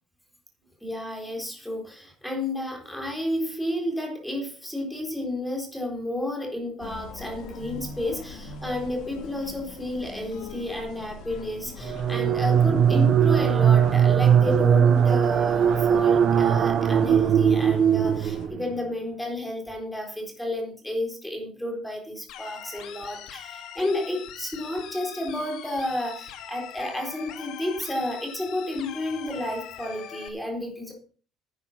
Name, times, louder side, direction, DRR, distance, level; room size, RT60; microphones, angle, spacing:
voice 1, 0.8-30.9, left 1 dB, 5° left, 1 dB, 4.0 m, -31 dB
sound 1, 6.8-18.5, left 3 dB, 85° left, 3.6 m, -41 dB
sound 2, 11.8-18.7, right 8 dB, 45° right, 0.7 m, -20 dB
sound 3, 22.3-30.3, left 10 dB, 70° left, 2.2 m, -42 dB
11.0 x 9.0 x 5.8 m, 0.42 s
cardioid pair, 145°, 0 cm